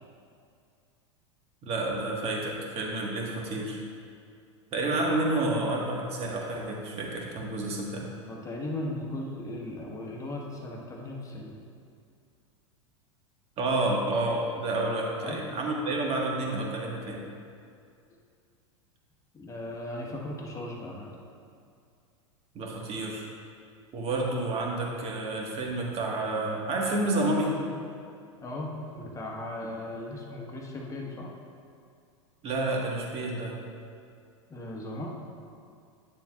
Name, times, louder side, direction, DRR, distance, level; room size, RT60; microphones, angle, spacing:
voice 1, 1.6-3.8 4.7-8.1 13.6-17.2 22.5-23.3 23.9-27.6 32.4-33.6, right 2 dB, 40° right, -1 dB, 1.5 m, -29 dB
voice 2, 8.1-11.6 15.2-15.4 19.3-21.1 28.4-31.3 34.5-35.1, left 1 dB, 20° left, -1 dB, 1.2 m, -37 dB
9.9 x 6.9 x 2.4 m, 2.4 s
hypercardioid pair, 100°, 16 cm